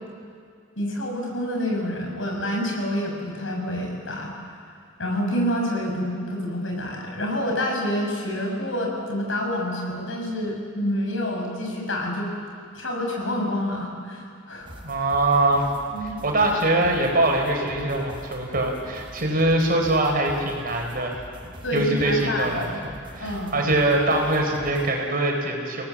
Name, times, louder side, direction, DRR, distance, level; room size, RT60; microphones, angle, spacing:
voice 1, 0.8-4.3 5.0-12.3 12.7-14.7 15.9-16.2 21.6-22.8 23.2-23.5, left 1 dB, 85° left, 0 dB, 5.7 m, -27 dB
sound 1, 14.6-24.9, equal, 25° right, 3.9 m, -43 dB
voice 2, 14.8-15.7 16.0-21.2 21.7-25.8, right 2 dB, 50° right, 2 dB, 4.4 m, -23 dB
30.0 x 18.0 x 7.4 m, 2.3 s
head